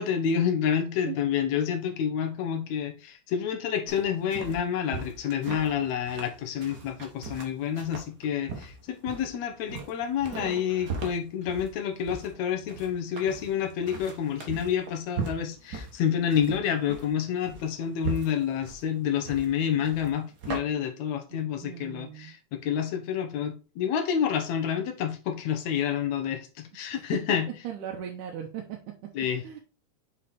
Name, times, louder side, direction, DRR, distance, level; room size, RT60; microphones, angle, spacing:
voice 1, 0.0-27.5 29.1-29.4, left 8 dB, 70° left, 2.2 m, -29 dB
sound 1, 3.9-20.6, right 4 dB, 55° right, 1.1 m, -39 dB
voice 2, 21.6-22.4 26.9-27.0 27.6-28.8 29.4-29.6, right 9 dB, 85° right, 2.4 m, -38 dB
6.8 x 4.3 x 4.3 m
omnidirectional pair, 3.6 m